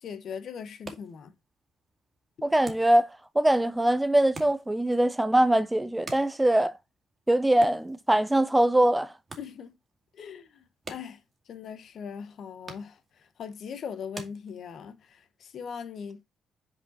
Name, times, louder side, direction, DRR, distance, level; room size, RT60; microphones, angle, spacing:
voice 1, 0.0-1.3 9.4-9.7 10.1-11.2 11.5-16.2, left 7 dB, 60° left, 1.0 m, -40 dB
sound 1, 0.6-15.1, right 3 dB, 30° right, 2.0 m, -50 dB
voice 2, 2.4-3.1 3.4-6.7 7.3-9.1, right 1 dB, 10° right, 0.5 m, -22 dB
5.5 x 4.9 x 4.0 m
cardioid pair, 90°, 0 cm